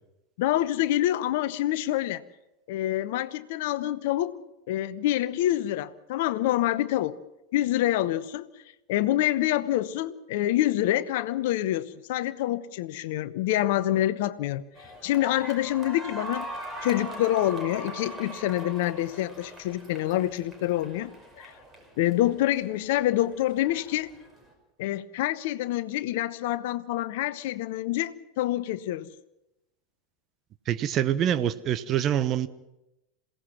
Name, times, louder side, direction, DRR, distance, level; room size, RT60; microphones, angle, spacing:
voice 1, 0.4-2.2 2.7-4.4 4.7-7.2 7.5-8.5 8.9-16.5 16.8-21.1 21.4-21.5 22.0-24.1 24.8-29.1, left 14 dB, 55° left, 0.9 m, -26 dB
sound 1, 14.8-24.5, right 1 dB, 20° right, 5.4 m, -41 dB
voice 2, 30.7-32.5, right 10 dB, 35° right, 1.0 m, -25 dB
27.5 x 17.0 x 6.1 m
figure-of-eight pair, 85°, 0 cm